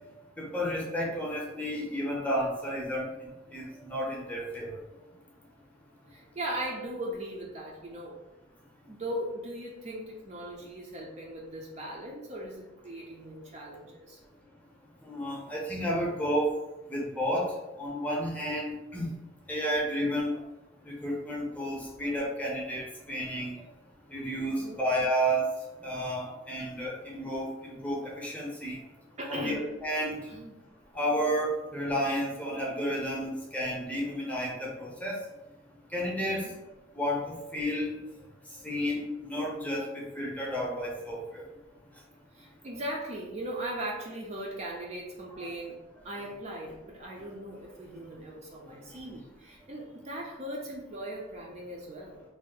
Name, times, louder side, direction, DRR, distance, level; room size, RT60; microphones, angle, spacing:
voice 1, 0.4-3.1 3.5-4.7 15.0-16.5 16.9-17.5 17.8-19.1 19.5-20.4 20.8-23.5 24.1-25.5 25.8-28.8 29.3-30.2 30.9-35.2 35.9-36.5 36.9-37.9 38.6-41.4 45.4-45.5 46.2-46.3 49.1-49.2, equal, 10° left, -4 dB, 0.6 m, -31 dB
voice 2, 6.1-8.2 8.9-14.2 24.4-24.8 29.2-29.7 30.3-30.6 36.2-36.6 42.3-45.8 46.0-52.2, right 1 dB, 35° right, -2 dB, 0.4 m, -39 dB
2.6 x 2.0 x 3.8 m, 1.0 s
head